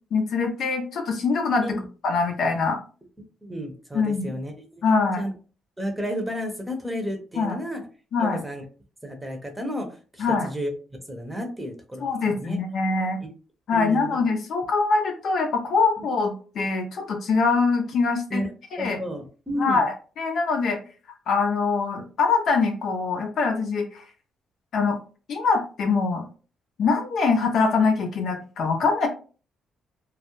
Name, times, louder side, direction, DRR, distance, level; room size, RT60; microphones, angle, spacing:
voice 1, 0.1-1.8 2.0-2.8 3.9-4.3 4.8-5.3 7.4-7.6 8.1-8.4 10.2-10.5 12.0-13.2 13.7-18.4 18.7-19.0 19.6-20.8 21.3-24.0 24.7-25.0 25.3-26.3 26.8-29.1, left 4 dB, 65° left, 3 dB, 0.5 m, -23 dB
voice 2, 3.4-4.8 5.2-5.3 5.8-7.8 8.2-8.6 9.0-9.9 10.1-10.7 11.1-12.1 12.4-12.6 13.7-14.2 18.3-18.5 18.8-19.8, equal, 10° right, 3 dB, 0.7 m, -31 dB
2.3 x 2.0 x 2.9 m, 0.37 s
cardioid pair, 90°, 0 cm